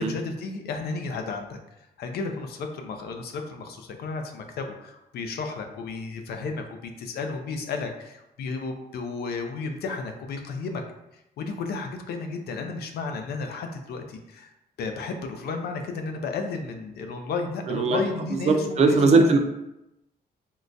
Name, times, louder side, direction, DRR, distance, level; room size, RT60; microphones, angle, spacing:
voice 1, 0.0-1.6 2.0-10.8 11.4-14.5 14.8-19.4, left 4 dB, 75° left, 5 dB, 0.4 m, -33 dB
voice 2, 17.7-18.0 18.5-19.4, right 3 dB, 40° right, 4 dB, 0.4 m, -19 dB
3.7 x 2.2 x 2.5 m, 0.89 s
cardioid pair, 150°, 17 cm